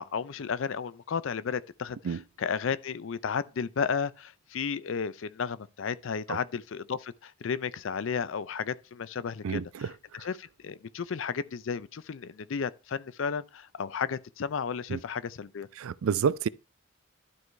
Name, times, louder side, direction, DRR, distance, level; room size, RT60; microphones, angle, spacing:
voice 1, 0.0-15.7, left 6 dB, 65° left, 0.5 m, -33 dB
voice 2, 9.4-9.9 10.2-10.3 14.9-15.0 15.8-16.5, right 6 dB, 85° right, 0.4 m, -29 dB
12.0 x 4.7 x 3.2 m
head